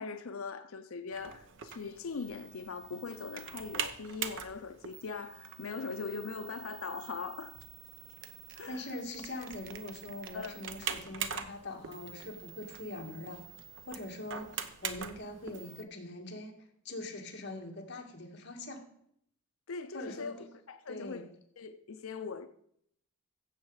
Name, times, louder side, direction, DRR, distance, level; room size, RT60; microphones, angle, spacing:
voice 1, 0.0-7.6 8.5-8.8 10.3-10.6 19.7-21.3 21.6-22.5, left 4 dB, 75° left, 0.6 m, -41 dB
sound 1, 1.1-15.8, right 7 dB, 60° right, 0.9 m, -43 dB
voice 2, 8.7-13.4 13.9-16.5 16.8-18.8 19.9-20.5 20.9-21.3, left 1 dB, 55° left, 1.9 m, -43 dB
15.5 x 7.3 x 4.8 m
head